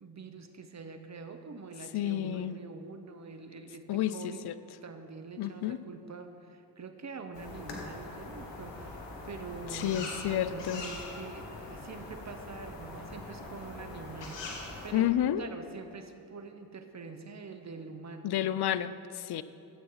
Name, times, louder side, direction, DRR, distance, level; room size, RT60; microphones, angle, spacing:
voice 1, 0.0-4.5 4.8-15.1 15.4-18.4, right 4 dB, 40° right, 7 dB, 1.1 m, -45 dB
voice 2, 1.9-2.6 3.9-4.6 5.4-5.8 9.7-10.8 14.9-15.4 18.2-19.4, left 11 dB, 65° left, 15 dB, 0.6 m, -30 dB
sound 1, 7.3-14.9, left 2 dB, 85° left, 1.5 m, -42 dB
13.5 x 8.1 x 4.0 m, 2.8 s
supercardioid pair, 45°, 42 cm